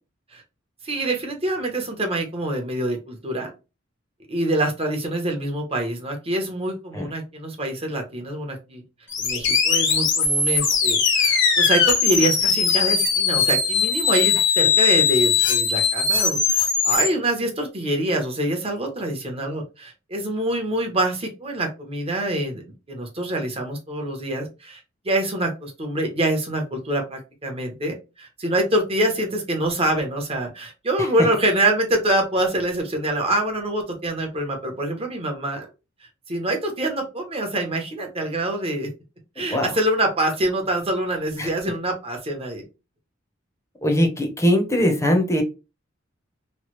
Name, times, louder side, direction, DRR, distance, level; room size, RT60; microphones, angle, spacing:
voice 1, 0.8-3.5 4.3-8.8 9.2-22.6 22.9-35.7 36.3-38.9 39.4-42.6, right 1 dB, 30° right, 2 dB, 0.9 m, -25 dB
sound 1, 9.1-17.1, left 6 dB, 65° left, 1.0 m, -20 dB
voice 2, 43.8-45.4, equal, 15° left, 3 dB, 0.8 m, -20 dB
3.1 x 2.3 x 3.1 m, 0.29 s
head